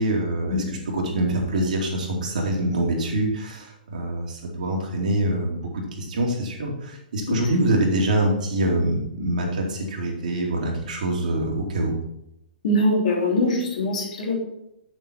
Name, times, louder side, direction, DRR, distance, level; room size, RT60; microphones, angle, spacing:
voice 1, 0.0-12.0, right 1 dB, 55° right, -1 dB, 2.7 m, -25 dB
voice 2, 12.6-14.4, left 1 dB, 55° left, -1 dB, 3.1 m, -22 dB
8.3 x 7.3 x 4.4 m, 0.82 s
figure-of-eight pair, 120°, 5 cm